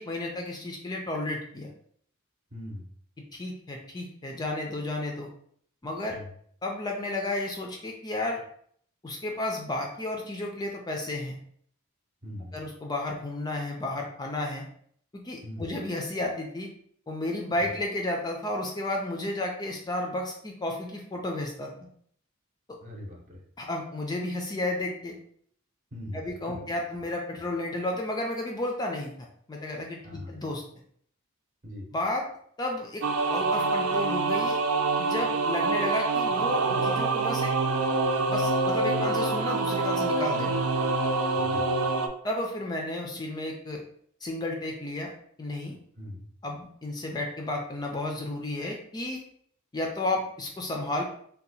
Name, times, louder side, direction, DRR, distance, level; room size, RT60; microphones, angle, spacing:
voice 1, 0.0-1.7 3.3-5.3 5.8-6.2 6.6-8.4 9.0-11.4 12.5-14.6 15.1-16.7 17.1-21.7 22.7-22.8 23.6-25.2 26.1-30.6 31.9-32.2 32.6-33.0 33.3-34.6 35.0-37.5 38.3-40.6 42.2-43.8 44.2-45.1 45.4-45.8 46.4-49.2 49.7-51.0, left 2 dB, 20° left, 1 dB, 0.4 m, -32 dB
voice 2, 2.5-2.9 6.1-6.2 12.2-12.6 15.4-15.7 22.8-23.4 25.9-26.6 30.0-30.3 31.6-31.9 41.4-41.8 46.0-46.3, left 1 dB, 35° right, 0 dB, 0.8 m, -40 dB
sound 1, 33.0-42.1, right 3 dB, 75° right, 0.4 m, -26 dB
2.7 x 2.2 x 4.0 m, 0.63 s
head